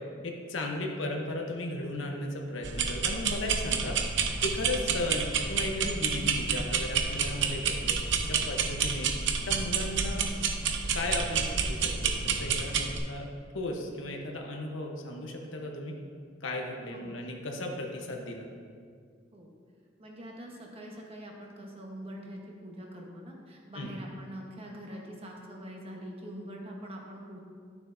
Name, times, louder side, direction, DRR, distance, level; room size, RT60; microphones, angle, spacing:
voice 1, 0.2-7.9 8.3-9.2 9.4-10.3 10.9-13.3 13.5-16.0 16.4-18.5 23.7-23.9, left 1 dB, 80° left, 1 dB, 1.0 m, -35 dB
sound 1, 2.6-13.0, right 6 dB, 65° right, 0.7 m, -29 dB
voice 2, 20.0-27.4, equal, 30° right, -1 dB, 1.2 m, -44 dB
12.0 x 7.1 x 2.7 m, 2.1 s
head